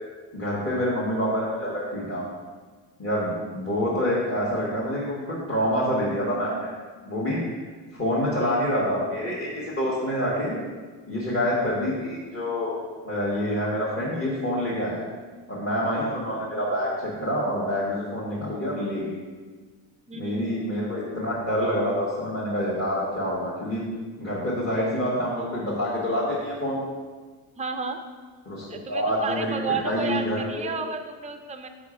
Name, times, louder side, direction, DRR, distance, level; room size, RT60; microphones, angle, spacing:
voice 1, 0.3-2.2 3.0-6.7 7.0-7.4 7.9-10.6 11.1-12.7 13.0-15.1 15.5-19.1 20.2-23.8 24.2-26.8 28.4-28.6 28.9-29.5 29.8-30.8, equal, 30° left, -9 dB, 1.4 m, -27 dB
voice 2, 20.1-20.5 27.6-28.0 28.7-31.7, right 5 dB, 15° right, 6 dB, 0.4 m, -32 dB
6.1 x 5.0 x 4.9 m, 1.4 s
cardioid pair, 160°, 45 cm